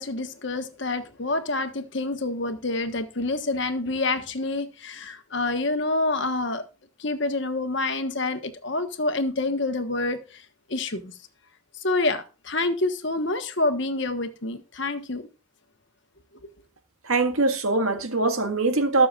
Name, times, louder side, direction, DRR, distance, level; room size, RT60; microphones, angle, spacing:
voice 1, 0.0-6.6 7.0-10.4 10.7-11.1 11.8-15.3, left 2 dB, 55° left, 1.4 m, -27 dB
voice 2, 17.1-19.1, right 3 dB, 80° right, 1.8 m, -22 dB
20.5 x 6.8 x 2.5 m
head